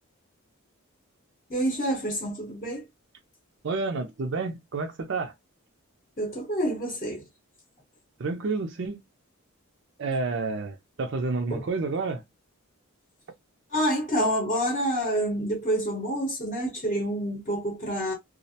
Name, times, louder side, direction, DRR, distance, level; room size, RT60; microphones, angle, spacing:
voice 1, 1.5-2.8 6.2-7.2 11.5-11.6 13.7-18.1, equal, 30° left, 0.8 m, -27 dB
voice 2, 3.6-5.3 8.2-9.0 10.0-12.2, right 3 dB, 55° right, 0.4 m, -29 dB
2.4 x 2.0 x 2.7 m
head